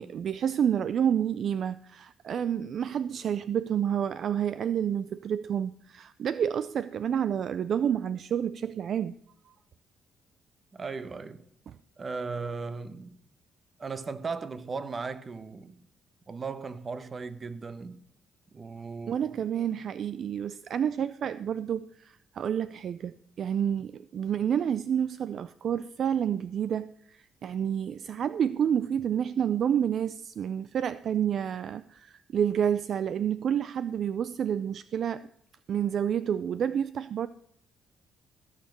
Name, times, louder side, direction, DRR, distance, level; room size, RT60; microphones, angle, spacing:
voice 1, 0.0-9.1 11.7-11.8 19.1-35.3 35.7-37.3, right 8 dB, 60° right, 0.4 m, -29 dB
voice 2, 10.7-11.4 12.0-13.1 13.8-15.8 16.3-18.0 18.5-19.3, right 4 dB, 35° right, 1.0 m, -37 dB
15.5 x 6.6 x 6.5 m
cardioid pair, 90°, 0 cm